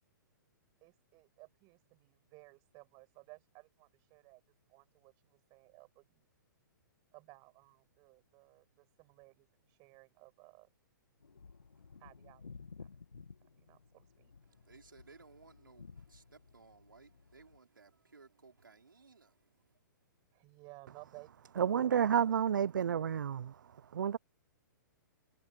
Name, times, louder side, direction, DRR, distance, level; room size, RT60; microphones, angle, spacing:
voice 1, 0.8-4.4 4.7-6.3 7.1-10.7 12.0-12.5 12.8-12.9 13.4-14.3 20.3-22.1, right 27 dB, 35° right, 7.1 m, -58 dB
sound 1, 11.2-17.6, left 5 dB, 85° left, 2.0 m, -55 dB
voice 2, 14.5-19.8, right 4 dB, 85° right, 5.1 m, -60 dB
voice 3, 21.6-23.6 23.9-24.2, right 8 dB, 70° right, 0.6 m, -30 dB
hypercardioid pair, 120°, 11 cm